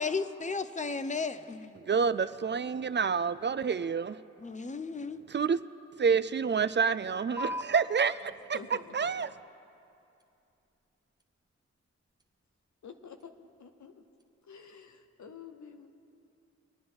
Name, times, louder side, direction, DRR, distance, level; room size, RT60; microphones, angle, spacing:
voice 1, 0.0-1.8 4.4-5.2, left 4 dB, 25° left, 0.7 m, -34 dB
voice 2, 1.8-4.2 5.3-5.6 6.0-8.6 8.9-9.3, right 6 dB, 40° right, 0.4 m, -28 dB
sound 1, 7.4-14.4, left 1 dB, 15° right, 0.9 m, -47 dB
voice 3, 8.5-9.2 12.8-14.0 14.4-15.9, left 6 dB, 75° left, 1.0 m, -49 dB
24.5 x 9.4 x 3.9 m
cardioid pair, 50°, 29 cm